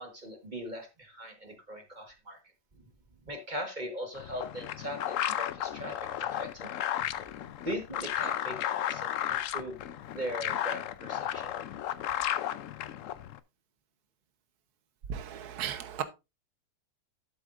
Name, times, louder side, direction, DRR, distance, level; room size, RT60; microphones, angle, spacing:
voice 1, 0.0-2.4 3.3-6.7 7.6-9.8 10.1-11.5 12.1-12.2, equal, 30° right, 1.3 m, -39 dB
sound 1, 4.1-13.4, left 11 dB, 75° left, 0.7 m, -34 dB
voice 2, 15.1-16.0, right 9 dB, 60° right, 1.5 m, -35 dB
12.0 x 7.8 x 2.5 m
omnidirectional pair, 2.0 m